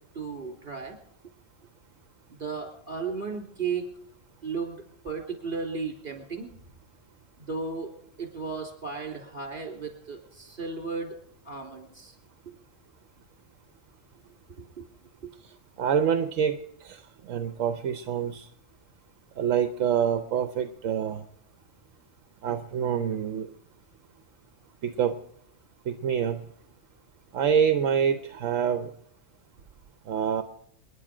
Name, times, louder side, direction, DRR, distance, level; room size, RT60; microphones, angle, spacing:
voice 1, 0.1-1.0 2.3-3.9 4.4-6.5 7.4-7.9 8.2-11.2 11.4-12.1 14.8-14.9 15.2-15.3, right 5 dB, 40° right, 3 dB, 3.4 m, -35 dB
voice 2, 15.8-16.6 16.8-17.0 17.3-18.5 19.4-21.2 22.4-23.5 24.8-25.1 25.9-26.4 27.3-28.9 30.1-30.4, right 8 dB, 75° right, 9 dB, 1.1 m, -26 dB
28.0 x 10.0 x 4.9 m, 0.73 s
omnidirectional pair, 1.3 m